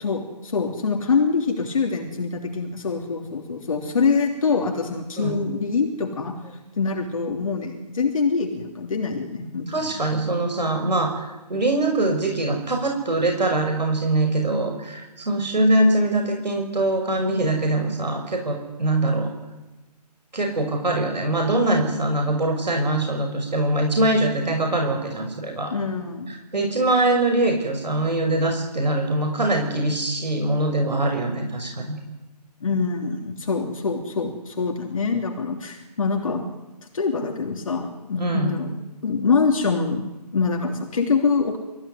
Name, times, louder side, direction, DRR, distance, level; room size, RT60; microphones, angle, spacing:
voice 1, 0.0-10.0 25.7-26.4 32.6-36.4 36.9-38.7 39.0-41.6, left 4 dB, 50° left, 2 dB, 3.3 m, -25 dB
voice 2, 9.7-19.3 20.3-25.7 26.3-32.0 38.2-38.6, right 2 dB, 90° right, 3 dB, 6.2 m, -23 dB
28.5 x 16.0 x 9.9 m, 1.1 s
figure-of-eight pair, 165°, 21 cm